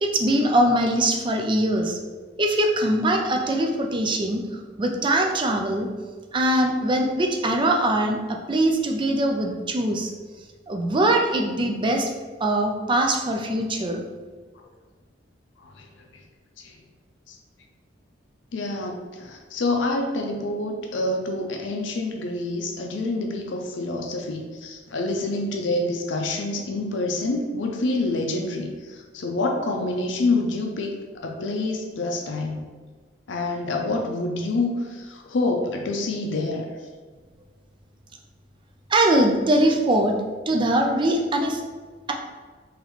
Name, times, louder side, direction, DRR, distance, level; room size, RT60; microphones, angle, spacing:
voice 1, 0.0-2.0 2.4-4.4 4.8-5.9 6.3-10.1 10.7-12.1 12.4-14.1 38.9-40.2 40.5-41.6, right 1 dB, 25° right, 2 dB, 0.4 m, -22 dB
voice 2, 18.5-30.9 31.2-32.7 33.3-36.7, left 2 dB, 80° left, 1 dB, 0.5 m, -27 dB
4.0 x 3.1 x 3.0 m, 1.4 s
head